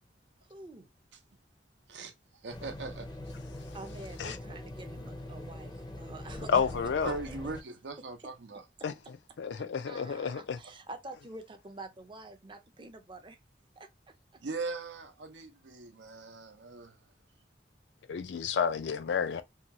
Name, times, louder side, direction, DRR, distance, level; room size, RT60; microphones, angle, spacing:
voice 1, 0.4-0.9 3.7-6.7 9.6-13.4 13.8-13.9, right 2 dB, 30° right, 0.5 m, -47 dB
voice 2, 1.9-3.3 7.0-8.6 14.4-17.0, right 3 dB, 85° right, 0.6 m, -40 dB
sound 1, 2.5-7.6, left 1 dB, 25° left, 0.5 m, -43 dB
voice 3, 6.5-7.2 8.8-8.9 9.4-10.6 18.1-19.4, left 6 dB, 80° left, 0.4 m, -30 dB
2.8 x 2.2 x 2.8 m
head